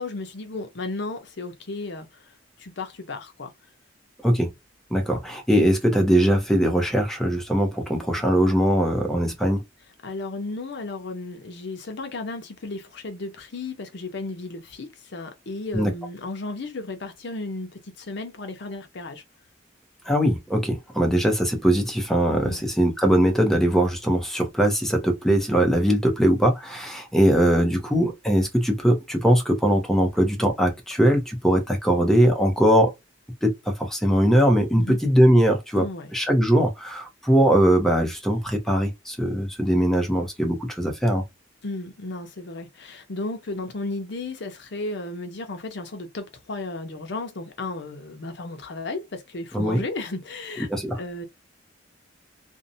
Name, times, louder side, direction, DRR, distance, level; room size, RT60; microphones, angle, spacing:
voice 1, 0.0-2.2 2.6-3.5 10.0-19.2 22.4-22.6 34.8-35.0 35.8-36.1 41.6-50.7 51.0-51.2, left 2 dB, 60° left, 0.6 m, -34 dB
voice 2, 4.9-9.6 15.7-15.9 20.1-32.9 33.4-35.9 36.1-41.2 49.5-49.8 50.7-51.0, equal, ahead, 0.6 m, -21 dB
2.6 x 2.1 x 2.6 m
head